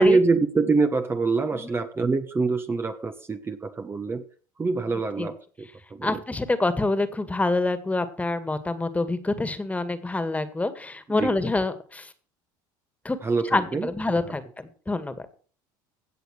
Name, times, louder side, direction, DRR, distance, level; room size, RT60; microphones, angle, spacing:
voice 1, 0.0-4.2 4.6-6.2 11.2-11.3 13.2-13.9 14.2-14.3, right 3 dB, 20° right, 7 dB, 1.2 m, -25 dB
voice 2, 6.0-12.1 13.0-13.2 13.5-15.3, left 2 dB, 15° left, 12 dB, 2.1 m, -26 dB
16.5 x 6.7 x 6.3 m, 0.41 s
hypercardioid pair, 85°, 11 cm